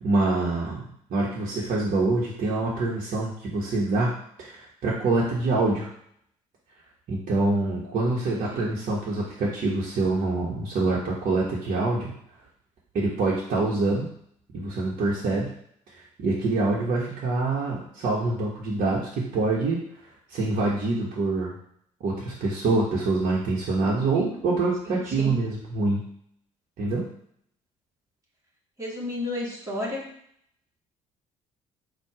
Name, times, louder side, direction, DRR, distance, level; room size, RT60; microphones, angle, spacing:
voice 1, 0.0-0.8 1.1-4.1 4.4-5.9 7.1-12.1 12.9-14.1 14.5-15.5 16.2-19.8 20.3-21.5 22.0-26.0 26.8-27.1, right 3 dB, 55° right, -6 dB, 1.2 m, -25 dB
voice 2, 28.8-30.0, left 2 dB, 20° right, -3 dB, 1.9 m, -32 dB
4.3 x 2.5 x 4.9 m, 0.67 s
hypercardioid pair, 55°, 16 cm